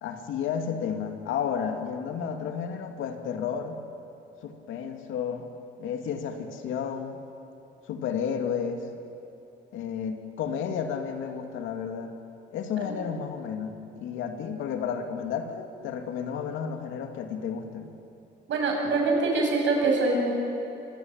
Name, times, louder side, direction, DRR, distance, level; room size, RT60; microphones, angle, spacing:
voice 1, 0.0-3.8 4.4-5.5 5.8-7.2 7.9-8.8 9.7-12.1 12.5-17.9, left 7 dB, 90° left, 5 dB, 2.5 m, -32 dB
voice 2, 18.5-20.3, right 3 dB, 70° right, 1 dB, 7.8 m, -24 dB
25.0 x 22.5 x 9.0 m, 2.9 s
cardioid pair, 90°, 20 cm